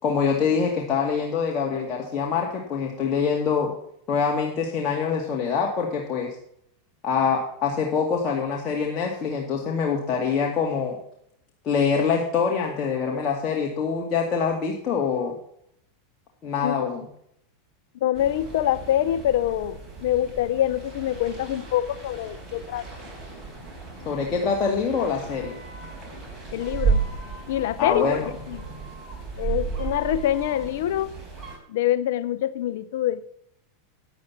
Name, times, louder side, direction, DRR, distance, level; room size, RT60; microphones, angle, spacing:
voice 1, 0.0-3.7 4.1-6.3 7.0-11.0 11.6-15.3 16.4-17.1 24.1-25.6 27.8-28.3, left 6 dB, 35° left, -1 dB, 2.3 m, -25 dB
voice 2, 18.0-22.9 26.5-27.0 27.5-28.6 29.4-31.1 31.7-33.2, left 12 dB, 70° left, 15 dB, 0.6 m, -25 dB
sound 1, 18.2-31.6, right 5 dB, 10° right, 4.8 m, -33 dB
10.0 x 8.4 x 5.8 m, 0.68 s
hypercardioid pair, 110°, 0 cm